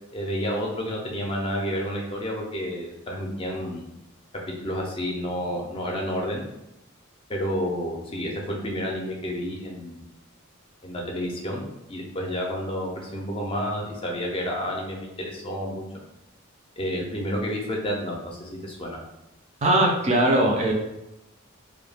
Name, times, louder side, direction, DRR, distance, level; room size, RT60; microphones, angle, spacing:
voice 1, 0.1-3.8 4.6-6.4 7.3-10.0 10.8-11.6 11.9-16.0 16.8-19.0, equal, 25° left, -1 dB, 0.4 m, -30 dB
voice 2, 19.6-20.7, right 1 dB, 30° right, 0 dB, 0.4 m, -20 dB
2.2 x 2.2 x 3.2 m, 0.91 s
head